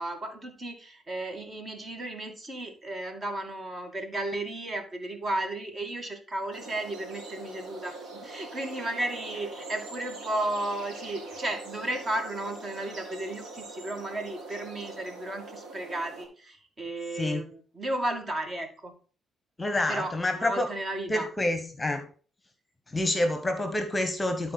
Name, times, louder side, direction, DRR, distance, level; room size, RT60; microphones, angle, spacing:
voice 1, 0.0-18.9 19.9-21.3, right 1 dB, 35° right, 5 dB, 2.1 m, -34 dB
sound 1, 6.5-16.3, right 2 dB, 70° right, 2.8 m, -43 dB
voice 2, 19.6-20.7 21.1-22.1 22.9-24.5, left 1 dB, 20° left, 8 dB, 1.2 m, -28 dB
11.0 x 4.4 x 4.1 m, 0.39 s
cardioid pair, 90°, 0 cm